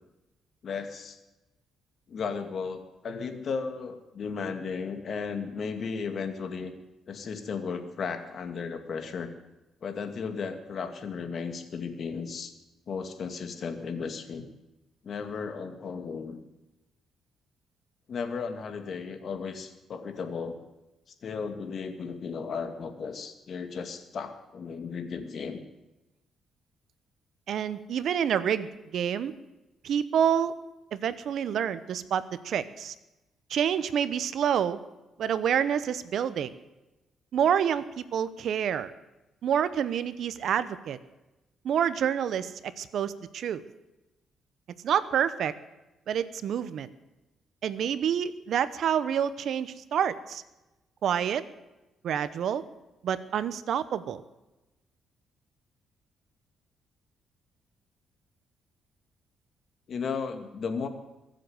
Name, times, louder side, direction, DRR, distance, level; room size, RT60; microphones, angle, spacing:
voice 1, 0.6-1.2 2.1-6.7 7.1-9.3 9.8-12.5 12.9-14.4 15.0-16.4 18.1-20.6 21.2-25.6 59.9-60.9, left 5 dB, 55° left, 7 dB, 2.1 m, -35 dB
voice 2, 27.5-29.3 29.8-30.5 30.9-32.9 33.5-34.8 35.2-36.5 37.3-38.9 39.4-41.0 41.6-43.6 44.8-45.5 46.1-46.9 47.6-50.4 51.0-51.4 52.0-52.6 53.0-54.2, right 8 dB, 65° right, 14 dB, 0.9 m, -28 dB
23.0 x 7.7 x 7.9 m, 1.0 s
cardioid pair, 90°, 0 cm